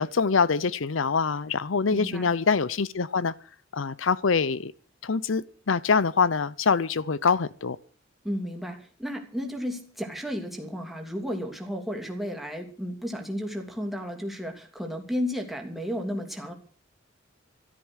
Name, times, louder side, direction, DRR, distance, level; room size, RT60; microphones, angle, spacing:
voice 1, 0.0-3.3 3.7-4.7 5.0-7.8, left 5 dB, 85° left, 0.7 m, -24 dB
voice 2, 1.9-2.3 8.2-16.5, equal, ahead, 3.0 m, -33 dB
14.0 x 13.0 x 6.4 m
head